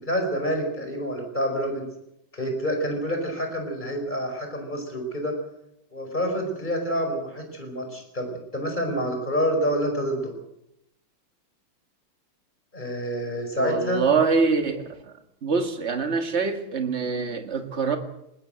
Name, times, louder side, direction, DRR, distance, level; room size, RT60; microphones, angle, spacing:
voice 1, 0.0-1.8 2.3-5.4 5.9-10.3 12.7-14.0, equal, 20° left, 4 dB, 5.2 m, -27 dB
voice 2, 13.6-15.1 15.4-18.0, right 5 dB, 30° right, 6 dB, 2.1 m, -24 dB
20.0 x 20.0 x 7.8 m, 0.83 s
omnidirectional pair, 2.4 m